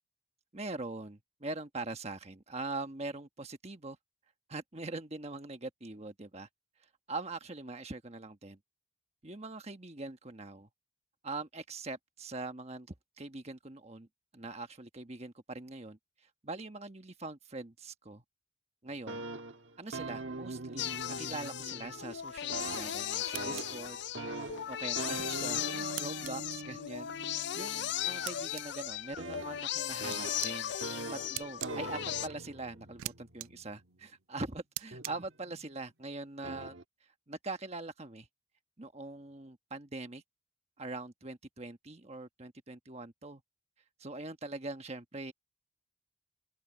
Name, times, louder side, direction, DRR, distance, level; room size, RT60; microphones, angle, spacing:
voice 1, 0.5-4.0 4.5-6.5 6.8-8.6 9.2-10.7 11.2-14.1 14.3-18.2 18.8-19.2 19.8-24.0 24.7-30.7 31.1-36.8 37.0-38.3 38.8-40.2 40.8-43.4 44.0-45.3, right 2 dB, 30° right, 1.3 m, -43 dB
sound 1, 18.9-22.2 22.5-34.1 34.9-35.7 36.4-36.8, right 2 dB, 65° right, 1.6 m, -43 dB
sound 2, 20.8-32.3, left 10 dB, 55° left, 0.4 m, -37 dB
sound 3, 23.3-23.7 26.0-26.3 28.3-28.7 30.1-30.5 31.4-31.7 33.0-33.1 33.4-33.5 34.8-35.1, right 16 dB, 85° right, 0.4 m, -39 dB
open air
head